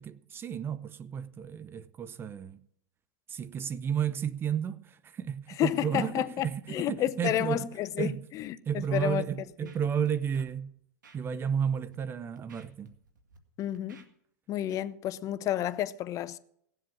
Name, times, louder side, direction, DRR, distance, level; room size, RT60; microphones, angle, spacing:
voice 1, 0.0-2.6 3.3-7.7 8.0-8.2 8.7-10.7 11.1-12.9, right 8 dB, 25° right, 0.6 m, -32 dB
voice 2, 5.6-9.3 13.6-14.0 14.5-16.4, left 12 dB, 35° left, 0.6 m, -31 dB
Scratching (performance technique), 8.9-9.1 9.5-10.1 10.3-10.5 11.0-11.2 11.7-11.9 12.4-13.4 13.7-14.1, right 3 dB, 90° right, 1.8 m, -54 dB
17.5 x 7.8 x 6.1 m
hypercardioid pair, 120°, 10 cm